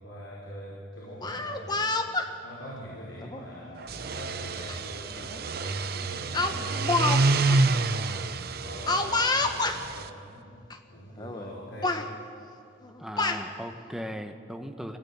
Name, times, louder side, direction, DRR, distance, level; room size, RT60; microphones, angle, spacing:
voice 1, 0.0-1.9 2.4-6.8 7.2-10.5 10.9-12.1, equal, 75° left, -5 dB, 5.4 m, -43 dB
Speech, 1.1-2.3 3.2-3.4 4.7-4.8 5.2-5.4 6.3-7.2 7.4-7.6 8.9-9.8 10.7-10.8 11.2-11.5 11.8-12.1 12.8-13.4, left 3 dB, 20° left, 1.2 m, -28 dB
sound 1, 3.8-10.1, right 3 dB, 50° right, 0.8 m, -28 dB
voice 2, 13.0-15.0, equal, ahead, 5 dB, 1.3 m, -37 dB
26.0 x 18.5 x 8.9 m, 2.5 s
head